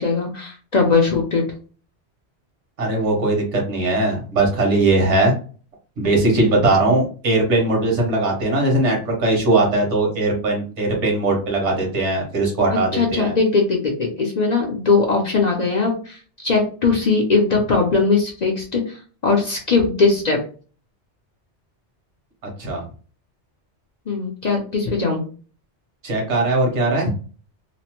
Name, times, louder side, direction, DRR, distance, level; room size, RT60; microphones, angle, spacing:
voice 1, 0.0-1.4 12.7-20.4 24.1-25.2, left 4 dB, 50° left, 0 dB, 0.6 m, -20 dB
voice 2, 2.8-5.3 6.0-13.3 22.6-22.8 26.0-27.1, right 2 dB, 80° right, 0 dB, 1.4 m, -19 dB
2.9 x 2.1 x 2.9 m, 0.38 s
omnidirectional pair, 1.2 m